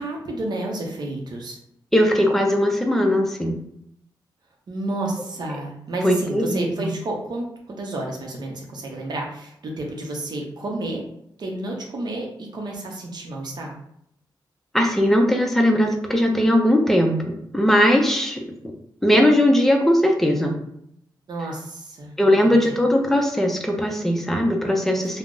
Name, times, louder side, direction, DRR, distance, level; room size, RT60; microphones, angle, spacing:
voice 1, 0.0-1.6 4.7-11.0 11.4-13.8 21.3-22.1 22.4-22.6, right 2 dB, 60° right, 0 dB, 0.7 m, -31 dB
voice 2, 1.9-3.5 6.0-6.9 14.7-17.2 17.5-18.4 19.0-20.5 22.2-25.2, equal, 5° left, 2 dB, 0.4 m, -19 dB
2.4 x 2.0 x 3.7 m, 0.73 s
wide cardioid pair, 115°, 8 cm